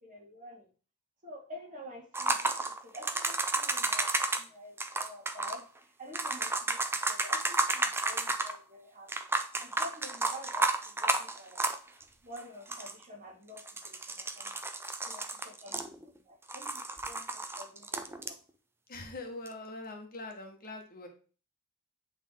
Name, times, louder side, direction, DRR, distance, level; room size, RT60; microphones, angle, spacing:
voice 1, 0.0-0.7 1.2-2.5 2.9-4.1 4.3-5.6 6.0-6.8 7.0-9.1 9.6-14.7 15.1-16.7 17.1-18.4, left 1 dB, 35° right, -1 dB, 2.0 m, -49 dB
sound 1, 2.1-4.4 4.8-5.6 6.1-8.6 9.1-12.0 12.4-12.5 12.7-13.0 13.6-16.2 16.5-18.3 19.5-19.6, right 2 dB, 10° right, 0.4 m, -32 dB
voice 2, 18.9-21.1, left 2 dB, 40° left, 3 dB, 1.3 m, -43 dB
8.5 x 3.5 x 3.7 m, 0.37 s
head